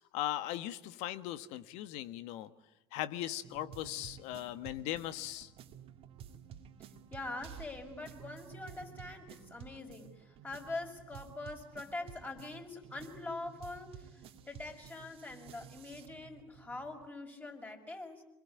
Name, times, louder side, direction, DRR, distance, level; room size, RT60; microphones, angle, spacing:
voice 1, 0.1-2.5 2.9-5.5, left 13 dB, 55° left, 13 dB, 1.5 m, -38 dB
sound 1, 3.4-17.1, right 8 dB, 45° right, 2.2 m, -53 dB
voice 2, 7.1-18.2, left 2 dB, 15° left, 3 dB, 5.9 m, -44 dB
27.0 x 22.0 x 9.8 m, 0.90 s
hypercardioid pair, 80°, 13 cm